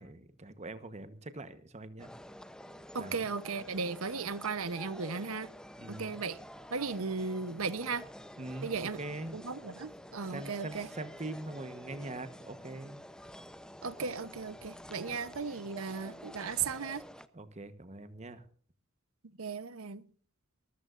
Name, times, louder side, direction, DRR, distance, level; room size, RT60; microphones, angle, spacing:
voice 1, 0.0-2.1 3.0-3.2 5.8-6.2 8.4-9.4 10.3-13.0 15.1-15.2 17.3-18.4, right 2 dB, 35° right, 1.1 m, -43 dB
sound 1, 2.0-17.3, equal, 5° left, 0.7 m, -49 dB
voice 2, 2.9-5.5 5.9-6.4 6.7-8.1 8.6-9.0 9.3-10.9 13.8-17.0 19.4-20.0, right 5 dB, 85° right, 0.9 m, -36 dB
24.5 x 14.5 x 2.5 m
head